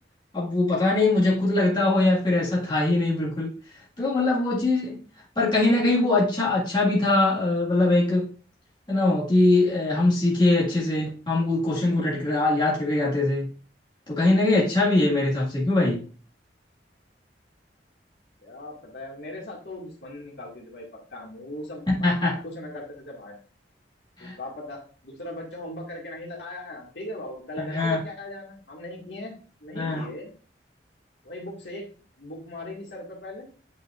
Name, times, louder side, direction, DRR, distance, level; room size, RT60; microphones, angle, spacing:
voice 1, 0.3-3.5 4.0-5.0 5.4-8.3 8.9-13.5 14.1-16.0 21.9-22.4 24.2-24.4 27.6-28.0 29.8-30.0, left 2 dB, 25° left, 1.8 m, -22 dB
voice 2, 18.4-23.4 24.2-29.3 29.6-30.3 31.2-31.9 32.2-33.5, left 1 dB, 70° left, 2.0 m, -39 dB
8.8 x 4.9 x 2.5 m
head